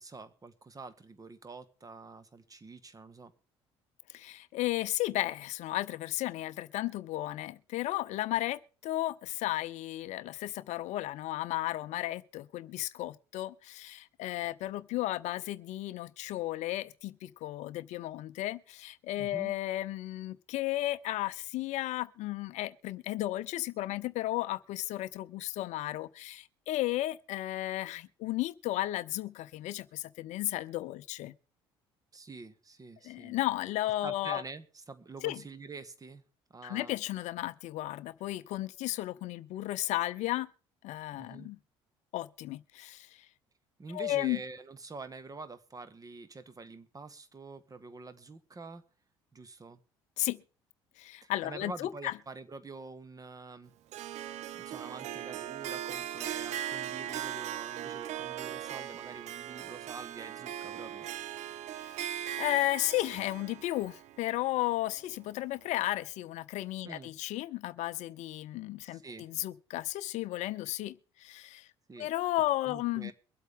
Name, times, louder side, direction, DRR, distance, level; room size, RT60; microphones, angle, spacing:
voice 1, 0.0-3.3 19.2-19.5 32.1-33.4 34.0-36.2 36.5-36.9 41.1-41.5 43.8-48.8 49.3-49.8 51.2-53.7 54.6-61.1 66.8-67.1 68.8-69.3 71.9-72.1 72.6-73.1, right 3 dB, 25° right, 1.5 m, -46 dB
voice 2, 4.1-31.3 33.0-34.4 35.2-35.4 36.6-40.5 40.8-41.6 42.1-43.3 43.9-44.4 50.2-50.4 51.0-52.1 61.7-71.7 72.0-73.1, left 16 dB, 60° left, 0.5 m, -34 dB
Harp, 53.9-65.1, right 11 dB, 60° right, 0.9 m, -39 dB
23.5 x 8.2 x 3.6 m
hypercardioid pair, 60°, 13 cm